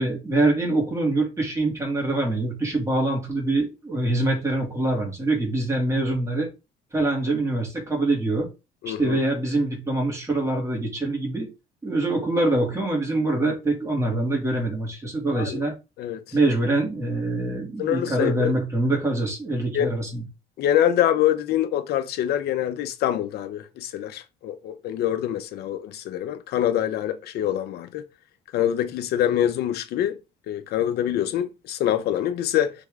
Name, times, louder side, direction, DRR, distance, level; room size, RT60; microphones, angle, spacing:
voice 1, 0.0-6.5 6.9-8.5 8.9-11.5 11.8-15.7 16.3-20.2, right 2 dB, 15° right, 2.3 m, -24 dB
voice 2, 8.8-9.2 15.3-15.6 16.0-16.4 17.8-18.5 19.7-19.9 20.6-28.0 28.5-30.2 30.5-32.7, left 11 dB, 70° left, 0.6 m, -25 dB
4.2 x 3.4 x 3.5 m
cardioid pair, 110°, 17 cm